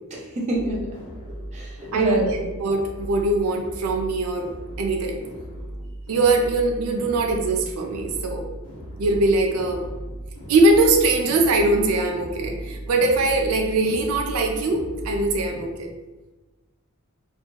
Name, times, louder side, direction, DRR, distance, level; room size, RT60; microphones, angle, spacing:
voice 1, 0.1-1.0 1.5-2.4, right 1 dB, 30° right, -2 dB, 0.5 m, -26 dB
sound 1, 0.5-15.6, right 1 dB, 90° left, 0.9 m, -37 dB
voice 2, 2.6-4.5 4.8-5.2 6.1-8.4 9.0-9.8 10.5-15.9, right 2 dB, 85° right, 3 dB, 0.4 m, -21 dB
2.8 x 2.5 x 2.2 m, 1.2 s
head